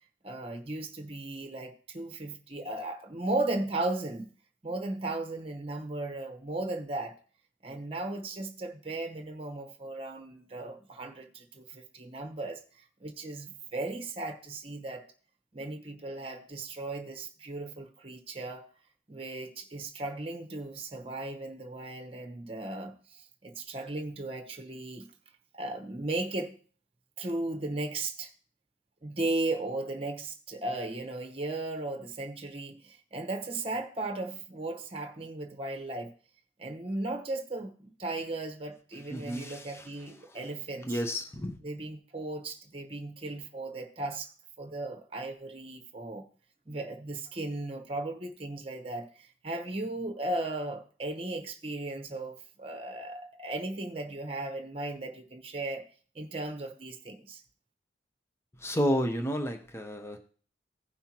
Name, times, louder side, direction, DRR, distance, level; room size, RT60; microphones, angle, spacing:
voice 1, 0.2-4.3 4.6-7.1 7.6-15.0 15.5-18.7 19.1-25.1 25.5-26.6 27.2-28.3 29.0-36.1 36.6-41.0 41.6-46.3 46.7-55.8 56.1-57.4, right 2 dB, 30° right, 1.1 m, -36 dB
voice 2, 39.1-39.9 40.9-41.5 58.6-60.2, equal, 15° left, 0.7 m, -31 dB
16.0 x 5.6 x 2.9 m
head